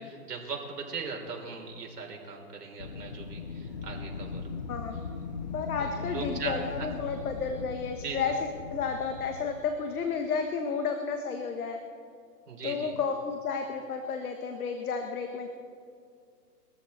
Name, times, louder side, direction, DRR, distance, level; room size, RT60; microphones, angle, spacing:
voice 1, 0.0-4.4 5.8-6.5 8.0-8.2 12.5-12.9, right 5 dB, 65° right, 1 dB, 3.7 m, -39 dB
Wind, 2.8-9.7, left 4 dB, 30° left, 0.5 m, -39 dB
voice 2, 5.5-11.8 12.6-15.5, left 5 dB, 60° left, 5 dB, 1.4 m, -32 dB
21.0 x 14.0 x 4.2 m, 2.3 s
hypercardioid pair, 150°, 50 cm